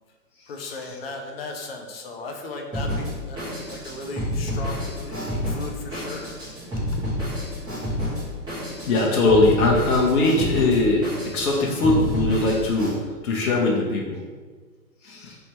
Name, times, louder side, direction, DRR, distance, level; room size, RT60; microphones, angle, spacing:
voice 1, 0.5-6.3 6.9-7.1, left 3 dB, 40° left, 2 dB, 0.6 m, -36 dB
Drum kit, 2.7-12.9, left 1 dB, 10° right, 1.1 m, -29 dB
voice 2, 8.9-13.0 13.2-14.2 15.0-15.4, left 2 dB, 65° left, -2 dB, 0.9 m, -21 dB
3.4 x 2.8 x 4.3 m, 1.4 s
hypercardioid pair, 135°, 48 cm